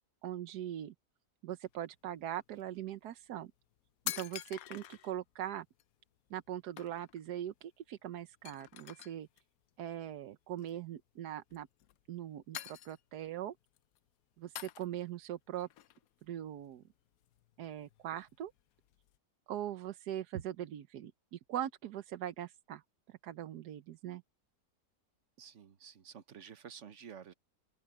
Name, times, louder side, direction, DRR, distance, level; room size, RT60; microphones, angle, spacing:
voice 1, 0.2-0.9 1.4-3.5 4.2-5.7 6.3-9.3 9.8-11.7 12.1-13.6 14.4-15.7 16.2-16.8 17.6-18.5 19.5-22.8 23.1-24.2, right 11 dB, 80° right, 1.3 m, -41 dB
sound 1, 1.7-1.8 2.3-2.6 3.4-3.5 3.7-5.2 5.8-5.9 6.3-6.5 6.8-7.3 7.6-7.7 8.0-8.1 8.5-9.4 10.5-10.9 11.5-12.2 12.5-13.3 13.7-14.0 14.6-15.2 15.6-16.9 17.2-19.2, left 12 dB, 70° left, 1.0 m, -46 dB
voice 2, 25.4-27.3, right 7 dB, 50° right, 1.2 m, -51 dB
open air
omnidirectional pair, 1.7 m